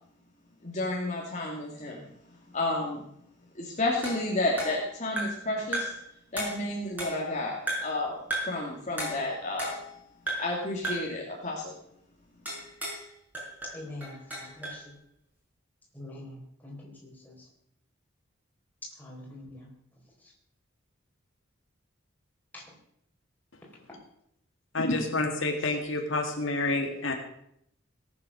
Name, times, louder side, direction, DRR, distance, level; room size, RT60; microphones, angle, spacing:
voice 1, 0.6-2.0 2.5-3.0 3.5-5.9 6.3-8.2 8.5-9.8 10.4-11.7, left 2 dB, 35° left, -2 dB, 2.4 m, -31 dB
sound 1, 4.0-5.5 5.7-6.1 6.4-7.3 7.7-8.0 8.3-8.6 9.0-10.0 10.3-10.6 10.8-11.2 12.5-13.1 13.3-14.8, right 1 dB, 10° right, 5.7 m, -35 dB
voice 2, 13.6-15.0 15.9-17.3 19.0-19.7 22.5-22.6 23.9-24.0, left 1 dB, 10° left, -3 dB, 4.2 m, -44 dB
voice 3, 24.7-27.1, left 2 dB, 70° left, 2 dB, 2.1 m, -28 dB
18.0 x 8.8 x 6.4 m, 0.73 s
head